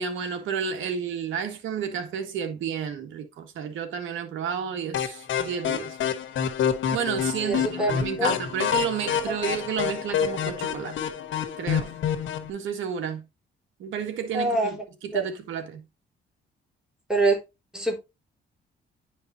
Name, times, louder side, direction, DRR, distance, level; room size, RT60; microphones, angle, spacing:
voice 1, 0.0-6.0 6.9-11.0 11.6-12.0 12.5-13.3 13.8-15.8, right 7 dB, 80° right, 1.7 m, -31 dB
sound 1, 4.9-12.5, left 8 dB, 75° left, 1.5 m, -28 dB
voice 2, 7.4-7.9 8.2-8.3 9.3-9.4 14.3-14.8 15.1-15.2 17.1-17.4 17.7-18.0, right 2 dB, 5° right, 4.0 m, -24 dB
10.5 x 5.3 x 2.7 m
cardioid pair, 90°, 20 cm